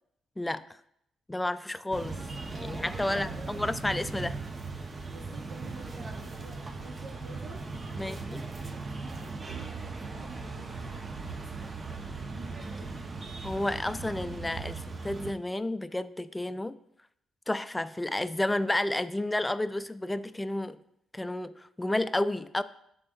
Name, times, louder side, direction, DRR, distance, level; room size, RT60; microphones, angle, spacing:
voice 1, 1.3-2.2 2.5-4.4 8.0-8.5 13.4-16.8 17.5-20.8 21.1-22.6, left 1 dB, 15° left, 0.4 m, -31 dB
sound 1, 1.9-15.3, right 3 dB, 40° right, 0.7 m, -38 dB
voice 2, 3.1-3.6 5.0-13.2, right 3 dB, 70° right, 0.9 m, -50 dB
10.5 x 3.8 x 2.3 m
supercardioid pair, 50°, 0 cm